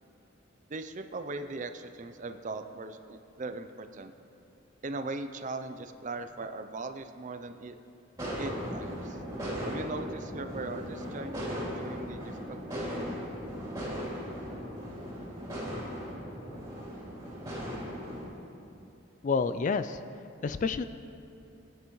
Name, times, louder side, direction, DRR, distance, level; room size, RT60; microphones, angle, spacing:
voice 1, 0.7-4.1 4.8-7.8 8.4-9.2 9.6-13.0, right 3 dB, 40° right, 8 dB, 0.5 m, -39 dB
sound 1, 8.2-18.3, equal, 15° right, 3.2 m, -37 dB
voice 2, 19.2-20.0 20.4-20.8, left 5 dB, 40° left, 12 dB, 0.3 m, -28 dB
20.0 x 9.3 x 3.1 m, 2.7 s
head